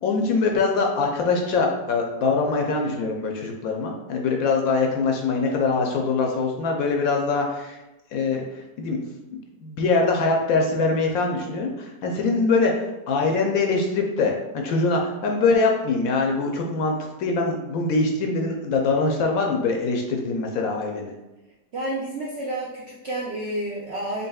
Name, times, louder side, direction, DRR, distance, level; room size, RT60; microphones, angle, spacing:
voice 1, 0.0-7.8 8.1-9.0 9.6-12.7 13.1-21.1, left 3 dB, 70° left, 1 dB, 0.9 m, -23 dB
voice 2, 21.7-24.3, right 1 dB, 65° right, -4 dB, 0.6 m, -30 dB
4.0 x 3.5 x 2.3 m, 1.0 s
omnidirectional pair, 1.7 m